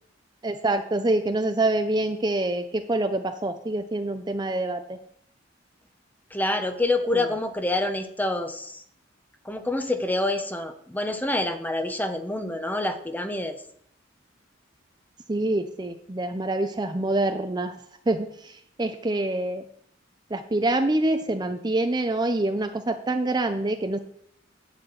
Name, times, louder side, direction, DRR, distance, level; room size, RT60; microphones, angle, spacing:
voice 1, 0.4-5.0 7.1-7.3 15.3-17.7 18.1-19.6 20.3-24.0, right 2 dB, 20° right, 7 dB, 0.6 m, -26 dB
voice 2, 6.3-8.8 9.4-13.6, left 2 dB, 10° left, 6 dB, 0.9 m, -27 dB
10.5 x 4.3 x 7.9 m, 0.66 s
head